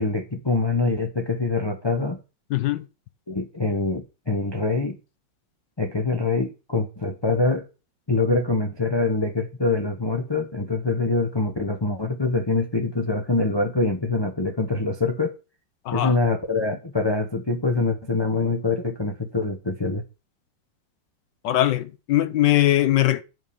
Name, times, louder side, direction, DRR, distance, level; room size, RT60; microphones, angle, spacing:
voice 1, 0.0-2.2 3.3-5.0 5.8-7.7 8.1-15.3 15.9-20.0, left 3 dB, 20° left, 0.7 m, -24 dB
voice 2, 2.5-2.8 15.8-16.2 21.4-23.2, left 14 dB, 70° left, 1.4 m, -21 dB
9.2 x 4.8 x 7.1 m
omnidirectional pair, 2.1 m